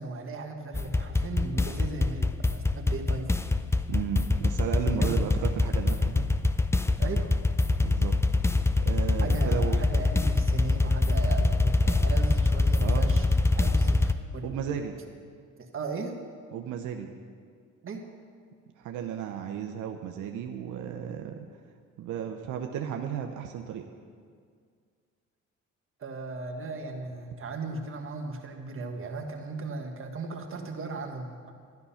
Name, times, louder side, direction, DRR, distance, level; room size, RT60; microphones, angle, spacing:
voice 1, 0.0-3.3 5.0-5.2 7.0-7.3 9.2-14.9 15.6-16.2 17.8-18.1 26.0-31.5, right 3 dB, 45° right, 3 dB, 1.6 m, -37 dB
sound 1, 0.7-14.1, left 2 dB, 10° left, 0.5 m, -24 dB
voice 2, 3.9-6.3 7.8-8.2 8.8-9.8 12.8-13.2 14.4-15.0 16.5-17.1 18.8-21.5 22.0-23.8, right 8 dB, 85° right, 4 dB, 0.8 m, -34 dB
12.0 x 11.0 x 5.7 m, 2.1 s
cardioid pair, 90°, 30 cm